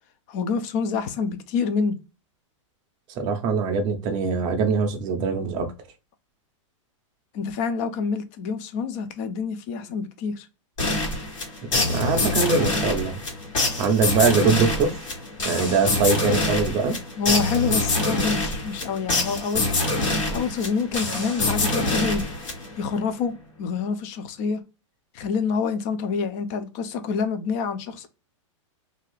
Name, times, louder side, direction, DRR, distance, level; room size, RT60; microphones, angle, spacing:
voice 1, 0.3-2.0 7.3-10.5 17.2-19.7 20.3-22.2 22.8-24.6 25.1-28.1, left 5 dB, 30° left, 0.4 m, -27 dB
voice 2, 3.2-5.7 11.9-13.1 13.8-14.9 15.4-17.0, right 5 dB, 25° right, 0.5 m, -22 dB
sound 1, 10.8-22.9, left 2 dB, 80° left, 1.6 m, -25 dB
2.6 x 2.4 x 3.1 m
supercardioid pair, 165°, 17 cm